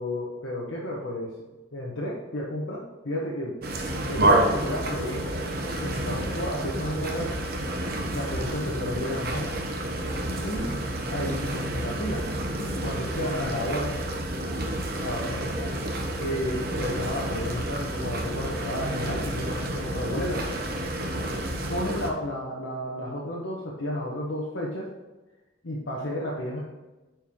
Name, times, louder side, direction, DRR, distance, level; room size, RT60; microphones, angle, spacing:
voice 1, 0.0-1.3 1.7-3.6 4.1-5.4 5.8-7.4 8.1-9.5 10.4-10.7 11.1-12.2 12.6-13.9 15.0-15.7 16.2-20.5 21.7-24.9 25.6-26.6, left 1 dB, 65° left, -5 dB, 1.1 m, -32 dB
sound 1, 3.6-22.1, right 1 dB, 45° right, 0.9 m, -29 dB
9.1 x 4.6 x 3.6 m, 1.1 s
head